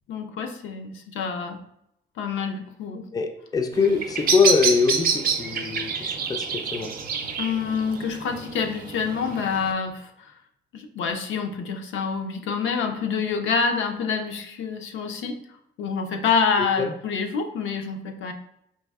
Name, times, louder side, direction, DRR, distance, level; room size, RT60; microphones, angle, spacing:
voice 1, 0.1-1.6 2.2-3.1 7.4-10.3 10.7-15.4 15.8-18.3, left 5 dB, 75° left, 4 dB, 0.5 m, -27 dB
voice 2, 3.1-6.9 16.8-16.9, left 5 dB, 20° left, 6 dB, 0.4 m, -23 dB
Bird vocalization bird call bird song, 3.7-9.7, right 5 dB, 50° right, 0.5 m, -28 dB
4.3 x 2.5 x 2.3 m, 0.76 s
cardioid pair, 90°, 20 cm